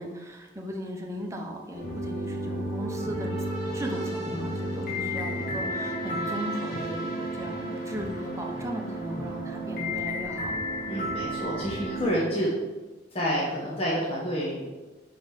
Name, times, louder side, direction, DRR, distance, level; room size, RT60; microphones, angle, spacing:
voice 1, 0.0-3.3 3.7-10.6, equal, 15° right, 1 dB, 1.0 m, -37 dB
sound 1, 1.7-12.2, equal, 55° left, 2.1 m, -32 dB
voice 2, 10.9-12.5 13.1-14.7, equal, 35° left, -6 dB, 1.5 m, -28 dB
5.4 x 5.2 x 5.8 m, 1.2 s
head